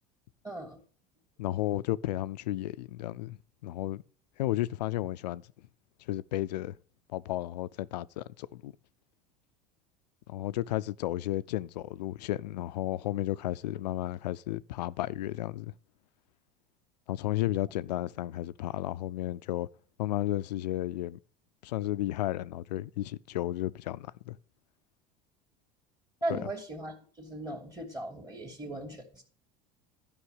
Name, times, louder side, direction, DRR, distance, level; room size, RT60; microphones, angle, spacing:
voice 1, 0.4-0.8 26.2-29.2, right 1 dB, 20° right, 2.4 m, -38 dB
voice 2, 1.4-4.0 4.4-5.4 6.1-6.8 7.1-8.7 10.3-15.7 17.1-19.7 20.0-21.2 21.6-24.4 26.3-26.4, left 15 dB, 80° left, 0.5 m, -33 dB
12.0 x 5.6 x 6.4 m
hypercardioid pair, 80°, 21 cm